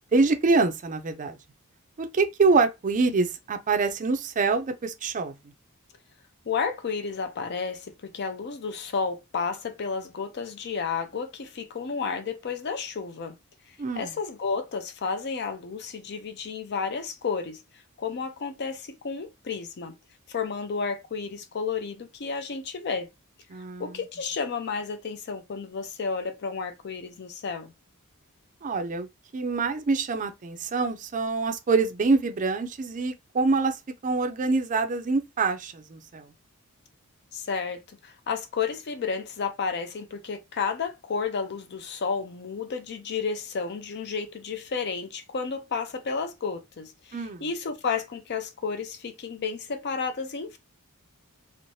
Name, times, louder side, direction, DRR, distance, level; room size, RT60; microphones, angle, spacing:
voice 1, 0.1-1.4 2.0-5.3 13.8-14.1 23.5-23.9 28.6-29.1 29.3-33.8 34.0-36.2 47.1-47.4, right 4 dB, 35° right, 0.4 m, -25 dB
voice 2, 6.5-13.4 14.0-17.6 18.0-19.9 20.3-23.1 23.8-27.7 37.3-50.6, left 5 dB, 50° left, 0.5 m, -32 dB
3.1 x 2.1 x 2.6 m
head